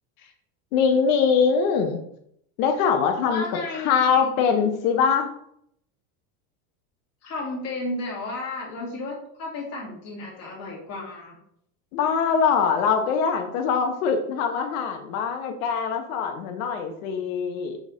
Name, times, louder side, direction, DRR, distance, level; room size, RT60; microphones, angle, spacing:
voice 1, 0.7-2.0 2.6-3.4 3.7-5.3 11.9-17.8, left 6 dB, 65° left, 5 dB, 1.1 m, -23 dB
voice 2, 3.3-3.9 4.2-4.3 7.2-11.4, left 2 dB, 35° left, -3 dB, 2.4 m, -33 dB
6.2 x 3.6 x 5.1 m, 0.71 s
supercardioid pair, 165°, 44 cm